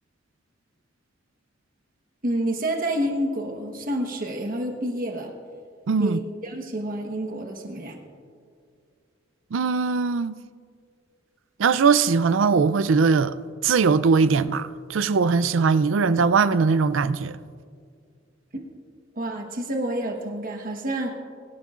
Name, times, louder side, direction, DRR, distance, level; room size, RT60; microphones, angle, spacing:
voice 1, 2.2-5.3 6.0-8.0 18.5-18.6 19.1-21.1, right 1 dB, 45° right, 1.2 m, -28 dB
voice 2, 5.9-6.2 9.5-10.4 11.6-13.3 13.6-17.4, right 5 dB, 85° right, 0.4 m, -20 dB
22.5 x 12.5 x 2.5 m
head